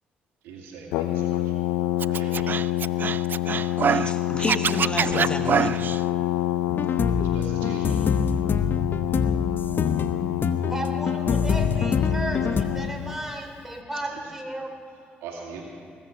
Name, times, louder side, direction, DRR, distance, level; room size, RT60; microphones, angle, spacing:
voice 1, 0.4-1.5 2.0-2.5 7.2-8.0 13.1-13.2 14.0-14.2 15.2-15.6, right 5 dB, 85° right, -1 dB, 2.2 m, -40 dB
Brass instrument, 0.9-13.2, left 14 dB, 90° left, 0.4 m, -27 dB
Scratching (performance technique), 2.0-4.1 4.4-6.0, right 7 dB, 50° right, 0.3 m, -25 dB
voice 2, 3.2-5.8, left 2 dB, 25° left, 6 dB, 1.1 m, -32 dB
sound 1, 6.7-12.6, left 5 dB, 55° left, 0.8 m, -25 dB
voice 3, 10.7-14.7, right 1 dB, 10° right, 2 dB, 3.1 m, -34 dB
20.0 x 8.9 x 6.2 m, 2.2 s
supercardioid pair, 55°, 4 cm